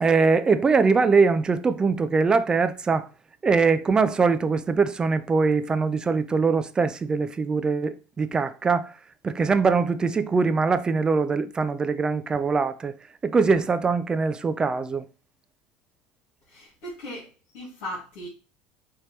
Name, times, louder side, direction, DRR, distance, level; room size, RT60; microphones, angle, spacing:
voice 1, 0.0-3.1 3.4-8.9 9.2-12.9 13.2-15.1, right 4 dB, 20° right, 0.3 m, -22 dB
voice 2, 16.5-17.3 17.5-18.3, equal, 70° left, 2.2 m, -37 dB
4.9 x 3.0 x 3.2 m
cardioid pair, 130°, 4 cm